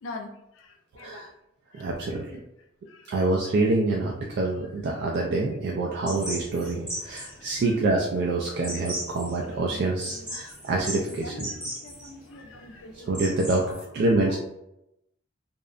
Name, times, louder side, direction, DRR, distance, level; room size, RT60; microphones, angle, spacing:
voice 1, 0.0-1.3 1.7-2.4 2.9-3.1 4.3-4.5 7.3-7.6 9.7-10.6 11.1-13.2 13.6-13.8 14.3-14.4, left 2 dB, 85° left, 4 dB, 0.4 m, -45 dB
voice 2, 1.0-1.3 1.7-2.3 3.1-11.5 12.9-14.4, right 2 dB, 55° right, -1 dB, 0.3 m, -26 dB
sound 1, 6.1-13.8, equal, 5° right, 0.8 m, -38 dB
2.6 x 2.1 x 2.4 m, 0.85 s
head